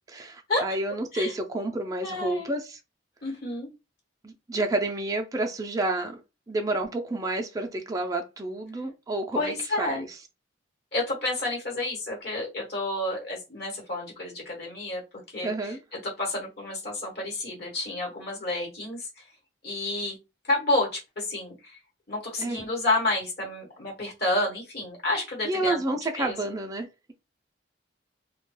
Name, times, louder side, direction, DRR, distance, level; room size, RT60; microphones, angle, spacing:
voice 1, 0.1-2.8 4.2-6.2 6.5-10.1 15.4-15.8 22.4-22.6 25.4-27.1, right 2 dB, 20° right, 0.3 m, -30 dB
voice 2, 2.0-2.5 3.2-3.7 9.3-10.0 10.9-15.0 15.3-19.1 19.6-20.2 20.5-21.8 22.1-25.8 26.1-26.4, left 2 dB, 60° left, 1.1 m, -30 dB
2.2 x 2.1 x 3.0 m
head